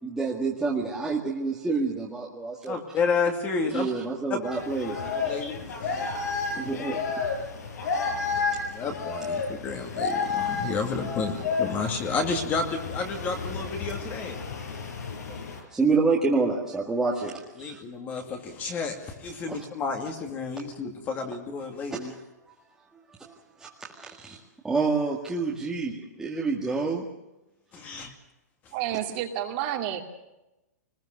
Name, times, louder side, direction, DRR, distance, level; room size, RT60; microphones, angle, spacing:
voice 1, 0.0-2.8 3.7-5.4 6.5-7.0 15.7-17.8 19.5-19.6 22.0-22.1 23.2-23.3 23.6-27.1, right 4 dB, 5° right, -5 dB, 1.9 m, -28 dB
voice 2, 2.7-3.9 4.3-4.4 5.1-6.5 8.1-14.4 17.6-22.1 27.7-28.1, left 4 dB, 20° left, 4 dB, 2.3 m, -31 dB
sound 1, 4.4-15.6, left 5 dB, 75° left, 6.1 m, -31 dB
voice 3, 28.7-30.0, right 11 dB, 35° right, 4 dB, 2.4 m, -30 dB
24.5 x 20.5 x 6.6 m, 0.96 s
hypercardioid pair, 165°, 9 cm